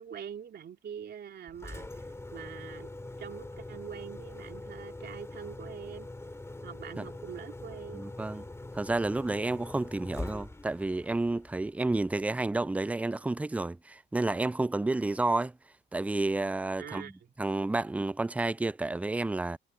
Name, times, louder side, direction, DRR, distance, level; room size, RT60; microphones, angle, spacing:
voice 1, 0.0-2.9 3.2-6.1 6.6-8.1 16.8-17.1, right 8 dB, 55° right, 3.0 m, -44 dB
Engine, 1.5-12.4, left 2 dB, 15° left, 2.7 m, -44 dB
voice 2, 7.9-8.4 8.7-15.6 15.9-17.1 17.4-19.6, right 2 dB, 5° right, 0.4 m, -30 dB
cardioid pair, 90°, 20 cm